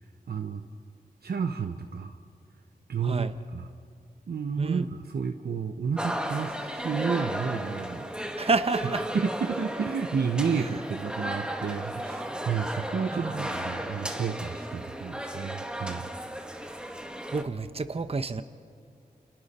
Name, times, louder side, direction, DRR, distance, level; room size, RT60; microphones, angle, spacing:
voice 1, 0.3-0.6 1.2-2.2 2.9-3.7 4.3-8.1 9.1-16.1, right 6 dB, 85° right, 5 dB, 1.0 m, -31 dB
voice 2, 3.0-3.3 4.6-4.9 8.4-9.0 10.6-10.7 13.1-13.5 17.3-18.4, right 3 dB, 40° right, 10 dB, 0.9 m, -29 dB
sound 1, 6.0-17.4, equal, 5° right, 1.9 m, -35 dB
29.0 x 28.0 x 4.3 m, 2.4 s
wide cardioid pair, 65°, 16 cm